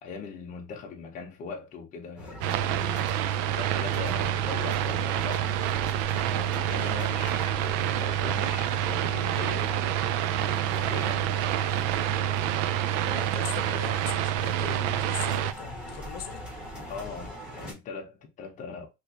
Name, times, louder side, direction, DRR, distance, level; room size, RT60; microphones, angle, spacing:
voice 1, 0.0-5.6 6.1-10.0 10.7-11.4 16.8-18.9, left 5 dB, 25° left, 0.7 m, -40 dB
sound 1, 2.2-17.7, equal, 5° right, 0.8 m, -42 dB
sound 2, 2.4-15.5, right 11 dB, 75° right, 0.4 m, -27 dB
sound 3, 2.5-17.3, left 1 dB, 45° right, 1.4 m, -49 dB
voice 2, 13.0-16.4, left 10 dB, 70° left, 0.7 m, -40 dB
3.0 x 2.9 x 2.8 m
cardioid pair, 165°, 29 cm